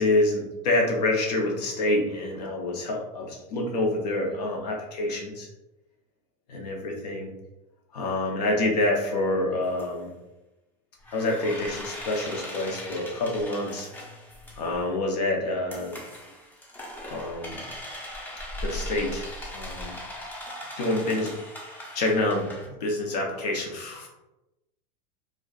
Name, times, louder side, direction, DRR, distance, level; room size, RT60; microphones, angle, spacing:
voice 1, 0.0-5.5 6.5-7.3 7.9-10.1 11.1-13.9 14.6-16.0 17.1-17.6 18.6-20.0 20.8-21.3 21.7-24.1, left 2 dB, 90° left, 0 dB, 0.7 m, -27 dB
sound 1, 9.6-9.8 11.0-14.8 15.7-22.7, left 1 dB, 10° left, 0.5 m, -39 dB
2.3 x 2.3 x 2.3 m, 0.99 s
supercardioid pair, 130°, 20 cm